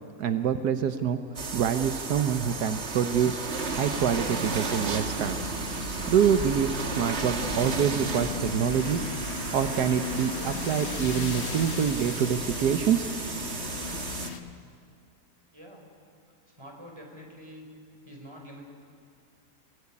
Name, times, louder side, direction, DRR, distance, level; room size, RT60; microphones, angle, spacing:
voice 1, 0.2-1.2 1.5-3.4 3.7-5.4 6.1-9.0 9.5-13.1, right 8 dB, 80° right, 9 dB, 1.5 m, -26 dB
sound 1, 1.4-14.3, right 4 dB, 45° right, 1.7 m, -34 dB
sound 2, 3.5-14.4, left 5 dB, 45° left, 1.5 m, -37 dB
voice 2, 15.5-15.8 16.6-17.7 18.0-18.7, equal, 15° right, 1 dB, 4.9 m, -46 dB
29.0 x 18.0 x 9.8 m, 2.3 s
omnidirectional pair, 1.7 m